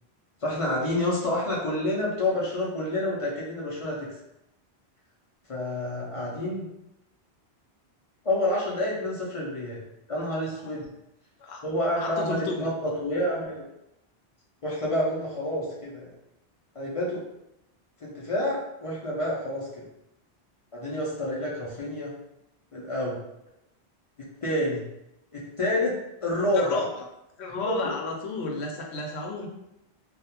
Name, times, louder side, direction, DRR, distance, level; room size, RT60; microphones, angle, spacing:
voice 1, 0.4-4.1 5.5-6.7 8.2-9.8 10.1-10.8 11.6-13.6 14.6-16.1 16.7-17.2 18.0-19.8 20.7-22.1 22.7-23.2 24.4-24.8 25.3-26.8 27.7-27.8, left 1 dB, 45° left, -5 dB, 0.5 m, -28 dB
voice 2, 12.0-12.7 26.5-27.0 27.4-29.5, left 3 dB, 85° left, 0 dB, 0.8 m, -32 dB
2.3 x 2.1 x 2.8 m, 0.85 s
omnidirectional pair, 1.1 m